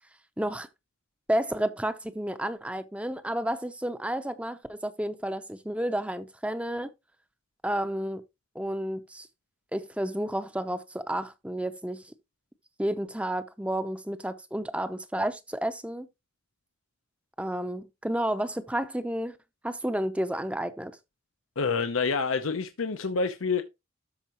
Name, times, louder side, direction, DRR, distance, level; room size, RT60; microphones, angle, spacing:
voice 1, 0.4-0.7 1.3-6.9 7.6-8.2 8.5-9.3 9.7-12.1 12.8-16.1 17.4-19.3 19.6-20.9, right 1 dB, 5° right, 0.6 m, -31 dB
voice 2, 21.6-23.6, left 4 dB, 90° left, 0.8 m, -27 dB
13.0 x 4.7 x 2.9 m
head